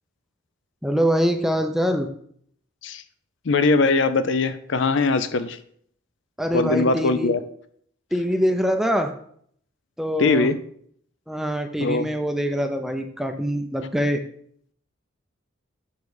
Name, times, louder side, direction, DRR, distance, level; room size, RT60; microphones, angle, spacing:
voice 1, 0.8-2.1 6.4-7.3 8.1-9.1 10.0-10.5 11.3-14.2, equal, ahead, 6 dB, 0.5 m, -24 dB
voice 2, 3.5-5.6 6.5-7.4 10.2-10.6 11.8-12.1, left 3 dB, 60° left, 12 dB, 0.5 m, -21 dB
7.3 x 4.7 x 4.8 m, 0.64 s
head